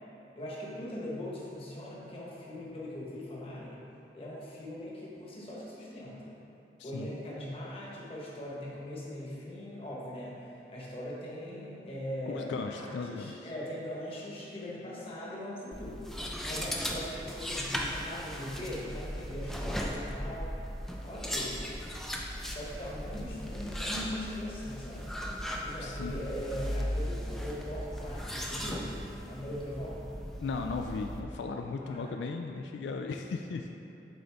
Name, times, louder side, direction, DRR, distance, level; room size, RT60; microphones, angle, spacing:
voice 1, 0.4-3.8 4.1-6.4 6.8-16.1 16.4-20.5 21.0-21.6 22.5-25.2 25.6-28.9 29.3-30.0 31.8-32.1, left 1 dB, 35° left, -5 dB, 1.1 m, -40 dB
voice 2, 12.3-13.5 25.8-26.2 30.4-33.7, left 4 dB, 85° left, 4 dB, 0.3 m, -36 dB
sound 1, 15.7-31.2, equal, ahead, 0.3 m, -37 dB
7.8 x 3.9 x 3.5 m, 2.8 s
head